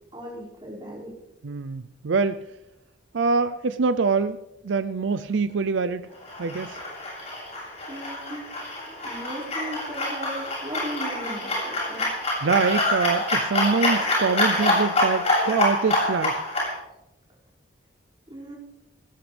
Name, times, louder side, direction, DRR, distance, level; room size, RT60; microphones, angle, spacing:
voice 1, 0.1-1.2 7.9-8.5 9.0-12.1 18.3-18.6, right 1 dB, 25° right, -5 dB, 5.5 m, -37 dB
voice 2, 1.4-2.4 3.1-4.4 4.6-6.0 6.4-6.8 12.4-16.4, right 4 dB, 75° right, 12 dB, 0.5 m, -24 dB
sound 1, 6.2-16.7, left 1 dB, 35° left, 7.8 m, -26 dB
20.0 x 19.0 x 3.4 m, 0.94 s
head